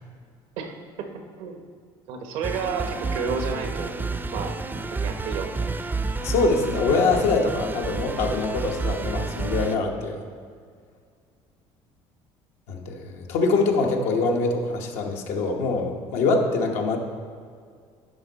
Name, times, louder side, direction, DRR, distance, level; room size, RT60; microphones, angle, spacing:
voice 1, 0.6-1.1 1.4-1.6 2.1-4.6 4.9-5.7, right 5 dB, 85° right, 5 dB, 1.0 m, -31 dB
sound 1, 2.4-9.8, right 3 dB, 15° right, 0.4 m, -30 dB
voice 2, 6.2-10.2 12.7-17.0, left 3 dB, 80° left, 2 dB, 1.1 m, -24 dB
10.5 x 5.4 x 4.0 m, 2.1 s
cardioid pair, 105°, 12 cm